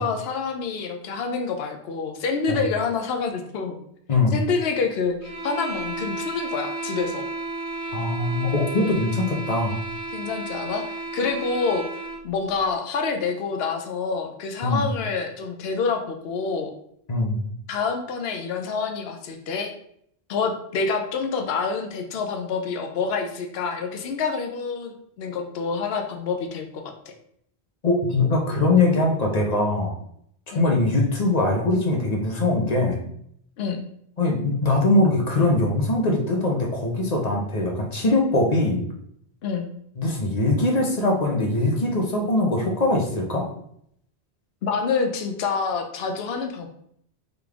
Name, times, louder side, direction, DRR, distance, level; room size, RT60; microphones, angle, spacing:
voice 1, 0.0-3.8 4.3-7.2 10.1-11.9 12.2-16.7 17.7-19.7 20.3-26.9 30.5-30.8 33.6-33.8 39.4-39.7 44.6-46.7, left 5 dB, 70° left, 5 dB, 0.8 m, -27 dB
sound 1, 5.2-12.3, right 2 dB, 40° right, 0.6 m, -33 dB
voice 2, 7.9-9.8 14.6-14.9 17.1-17.4 27.8-29.9 30.5-33.0 34.2-38.8 40.0-43.4, left 2 dB, 45° left, 0 dB, 0.9 m, -22 dB
3.9 x 3.3 x 3.4 m, 0.70 s
omnidirectional pair, 1.1 m